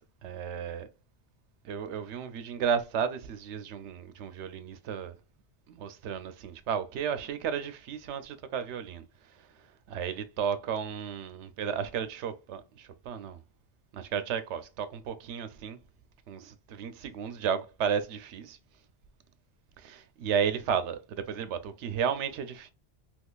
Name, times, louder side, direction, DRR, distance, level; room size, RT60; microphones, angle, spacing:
voice 1, 0.2-0.9 1.6-5.1 5.7-9.0 9.4-9.5 9.9-13.4 13.9-15.8 16.3-18.6 19.8-22.7, right 7 dB, 85° right, 0.9 m, -33 dB
3.6 x 2.9 x 2.2 m
omnidirectional pair, 1.2 m